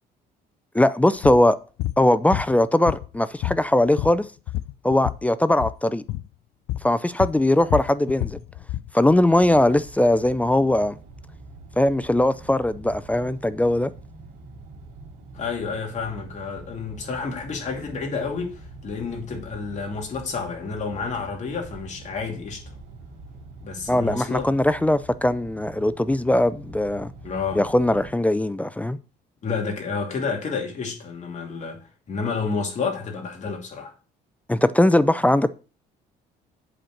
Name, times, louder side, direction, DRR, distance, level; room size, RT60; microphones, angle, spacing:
voice 1, 0.7-1.6 2.0-4.3 4.8-6.0 6.8-8.4 8.9-11.0 11.8-13.9 23.9-27.1 27.5-29.0 34.5-35.5, left 1 dB, 10° left, 0.4 m, -20 dB
sound 1, 1.2-1.4 1.8-2.0 2.3-3.2 3.4-5.2 5.5-5.8 6.1-6.3 6.7-6.9 7.2-8.9, left 15 dB, 80° left, 0.4 m, -29 dB
sound 2, 9.0-28.1, right 2 dB, 80° right, 2.4 m, -44 dB
voice 2, 15.3-22.6 23.6-24.5 27.2-27.6 29.4-33.9, left 5 dB, 45° left, 2.8 m, -30 dB
7.9 x 4.4 x 6.4 m
cardioid pair, 110°, 17 cm